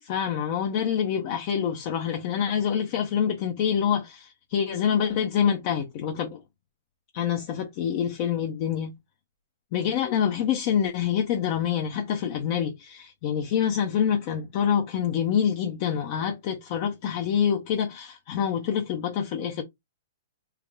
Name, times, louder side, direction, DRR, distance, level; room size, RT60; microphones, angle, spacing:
voice 1, 0.0-6.4 7.1-8.9 9.7-19.6, left 8 dB, 45° left, 0.6 m, -26 dB
3.4 x 2.1 x 3.5 m
hypercardioid pair, 130°, 0 cm